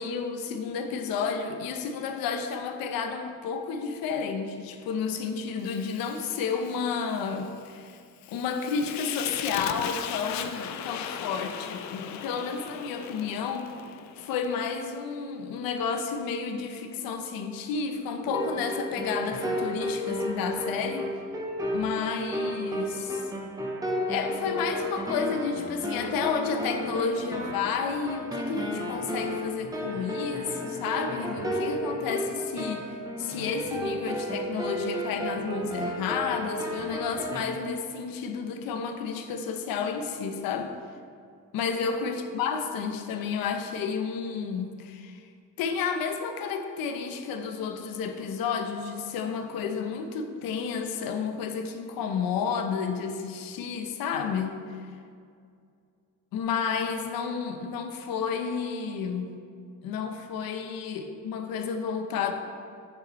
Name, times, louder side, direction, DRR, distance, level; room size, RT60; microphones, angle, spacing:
voice 1, 0.0-7.9 8.3-13.7 14.2-21.1 21.7-23.3 24.1-32.9 33.2-40.7 41.5-45.3 45.6-54.6 56.3-59.3 59.8-62.3, left 6 dB, 90° left, 6 dB, 0.8 m, -31 dB
Fire, 5.6-14.8, left 9 dB, 55° left, 0.5 m, -39 dB
sound 1, 18.2-37.4, equal, 10° right, 0.8 m, -32 dB
9.0 x 6.8 x 3.1 m, 2.3 s
cardioid pair, 175°, 34 cm